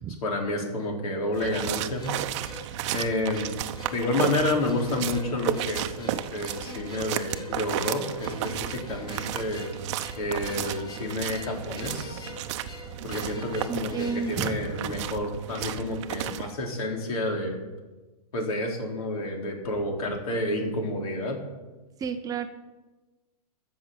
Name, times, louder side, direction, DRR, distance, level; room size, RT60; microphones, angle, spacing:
voice 1, 0.2-2.2 2.9-3.5 3.9-9.7 10.2-12.3 13.0-17.6 18.3-21.4, left 1 dB, 65° left, 1 dB, 4.0 m, -30 dB
sound 1, 1.3-16.5, right 11 dB, 50° right, 0.8 m, -33 dB
sound 2, 2.0-15.2, left 2 dB, 20° left, 2.0 m, -45 dB
voice 2, 13.7-15.0 22.0-22.5, right 6 dB, 20° right, 8 dB, 0.7 m, -31 dB
13.0 x 6.9 x 8.9 m, 1.2 s
hypercardioid pair, 135°, 20 cm